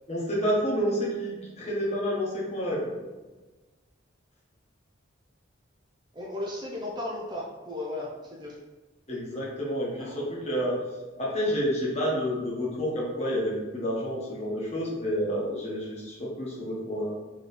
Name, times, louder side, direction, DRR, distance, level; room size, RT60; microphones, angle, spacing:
voice 1, 0.1-2.9 9.1-10.8 11.2-17.1, equal, 35° left, -5 dB, 1.1 m, -29 dB
voice 2, 6.1-8.6 10.0-10.3, left 1 dB, 20° right, -3 dB, 0.5 m, -35 dB
4.4 x 3.1 x 3.3 m, 1.2 s
head